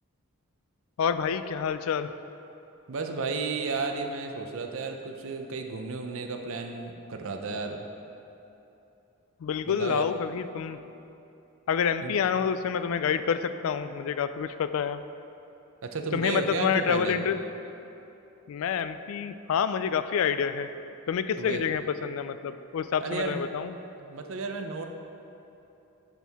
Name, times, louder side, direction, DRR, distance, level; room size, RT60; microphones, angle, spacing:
voice 1, 1.0-2.1 9.4-10.8 11.7-15.0 16.1-17.4 18.5-20.7 21.1-23.7, left 7 dB, 65° left, 11 dB, 0.3 m, -28 dB
voice 2, 2.9-7.8 9.7-10.1 12.0-12.1 15.8-17.2 21.4-21.6 23.0-23.4 24.0-24.9, right 4 dB, 65° right, 4 dB, 0.6 m, -33 dB
11.5 x 4.5 x 3.5 m, 2.9 s
head